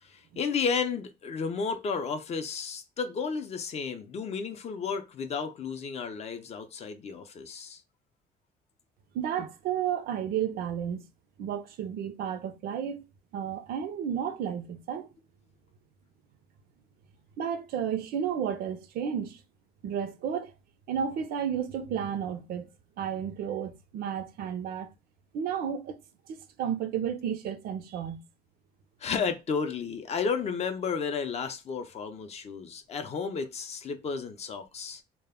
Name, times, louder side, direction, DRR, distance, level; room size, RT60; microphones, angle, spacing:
voice 1, 0.0-7.8 29.0-35.0, left 5 dB, 40° left, 0.4 m, -32 dB
voice 2, 9.1-11.1 11.4-13.0 13.3-15.1 17.4-19.4 19.8-20.5 20.9-22.7 23.0-24.9 25.3-26.0 26.3-28.2, right 8 dB, 65° right, 0.4 m, -32 dB
2.1 x 2.1 x 3.4 m
cardioid pair, 110°, 17 cm